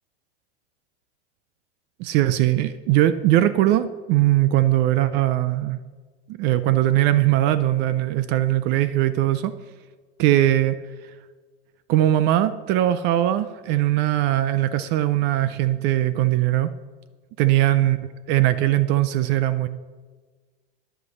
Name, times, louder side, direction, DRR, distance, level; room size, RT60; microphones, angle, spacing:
voice 1, 2.0-5.8 6.4-9.5 10.2-10.8 11.9-16.7 17.4-18.0 18.3-19.7, right 14 dB, 35° right, 14 dB, 0.4 m, -20 dB
9.9 x 8.0 x 7.0 m, 1.4 s
supercardioid pair, 145°, 30 cm